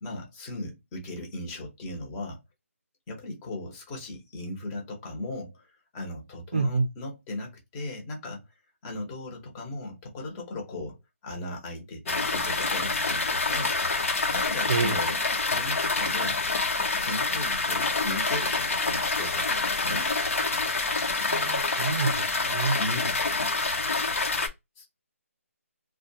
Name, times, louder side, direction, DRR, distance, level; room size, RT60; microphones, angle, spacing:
voice 1, 0.0-2.4 3.1-8.4 8.8-13.7 14.3-16.4 16.9-20.1 22.8-23.2 24.8-25.0, left 2 dB, 15° left, 0.8 m, -37 dB
voice 2, 6.5-6.9 14.7-15.0 21.3-22.8, right 4 dB, 35° right, 0.5 m, -27 dB
sound 1, 12.1-24.5, left 3 dB, 65° left, 1.0 m, -27 dB
2.3 x 2.2 x 2.7 m
figure-of-eight pair, 165°, 8 cm